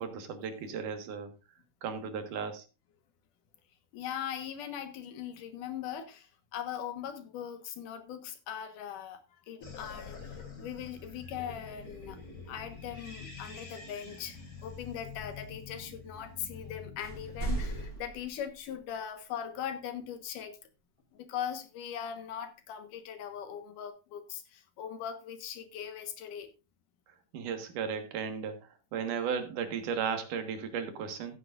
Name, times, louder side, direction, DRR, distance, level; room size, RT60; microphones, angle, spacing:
voice 1, 0.0-1.3 1.8-2.6 27.3-31.4, right 6 dB, 80° right, 3.0 m, -35 dB
voice 2, 3.9-9.2 9.5-14.4 14.6-20.6 21.1-26.5, left 9 dB, 85° left, 2.9 m, -40 dB
sound 1, 9.6-17.9, left 5 dB, 40° left, 4.0 m, -46 dB
sound 2, 16.5-16.7 17.0-19.0, right 3 dB, 20° right, 4.5 m, -38 dB
15.0 x 9.6 x 2.5 m
omnidirectional pair, 3.6 m